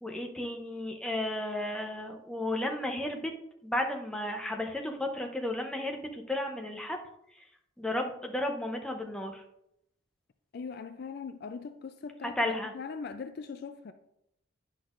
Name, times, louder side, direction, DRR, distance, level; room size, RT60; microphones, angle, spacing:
voice 1, 0.0-3.3 3.6-7.0 7.8-9.4 12.2-12.7, left 1 dB, 5° left, 0.6 m, -33 dB
voice 2, 10.5-13.9, left 5 dB, 50° left, 0.3 m, -41 dB
9.8 x 6.2 x 2.5 m
head